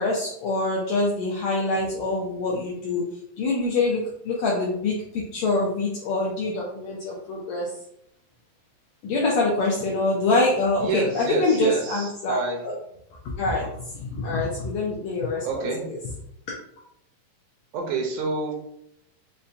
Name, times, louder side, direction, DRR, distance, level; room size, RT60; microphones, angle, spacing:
voice 1, 0.0-3.0 3.4-7.7 9.0-12.7 13.4-16.0, left 2 dB, 85° left, -3 dB, 1.5 m, -25 dB
voice 2, 10.8-12.6 15.4-15.9 17.7-18.5, right 3 dB, 80° right, 1 dB, 2.0 m, -28 dB
5.4 x 2.1 x 2.6 m, 0.75 s
omnidirectional pair, 3.8 m